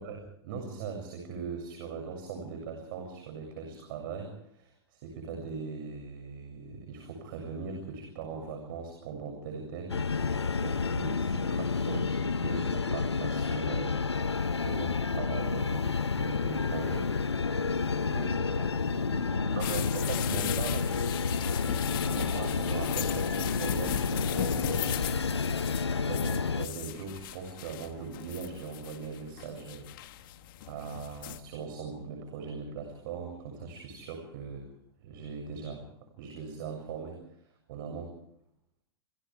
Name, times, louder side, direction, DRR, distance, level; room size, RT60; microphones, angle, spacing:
voice 1, 0.0-10.0 10.6-14.3 14.6-17.1 19.6-20.8 22.0-24.9 25.7-30.2 30.6-34.7 35.0-35.8 36.2-37.2 37.7-38.2, right 5 dB, 55° right, 3 dB, 7.2 m, -40 dB
sound 1, 9.9-26.7, left 4 dB, 85° left, 0.9 m, -30 dB
voice 2, 18.1-20.7, right 1 dB, 90° right, 6 dB, 6.9 m, -42 dB
sound 2, 19.6-31.4, left 14 dB, 55° left, 1.9 m, -39 dB
28.5 x 28.0 x 3.5 m, 0.71 s
figure-of-eight pair, 105°, 14 cm